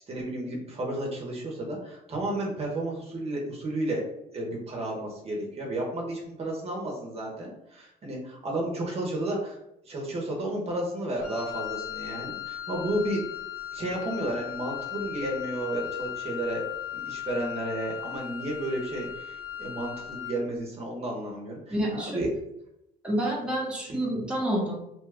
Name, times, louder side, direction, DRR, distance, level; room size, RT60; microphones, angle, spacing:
voice 1, 0.1-4.0 4.3-9.6 9.8-13.2 13.7-16.7 16.9-22.3 24.0-24.1, right 1 dB, 35° right, -1 dB, 0.8 m, -32 dB
Wind instrument woodwind instrument, 11.2-20.5, left 11 dB, 85° left, 0.8 m, -37 dB
voice 2, 21.7-22.2 23.0-24.8, right 1 dB, 5° right, -4 dB, 0.8 m, -28 dB
2.8 x 2.2 x 3.4 m, 0.82 s
cardioid pair, 110°, 17 cm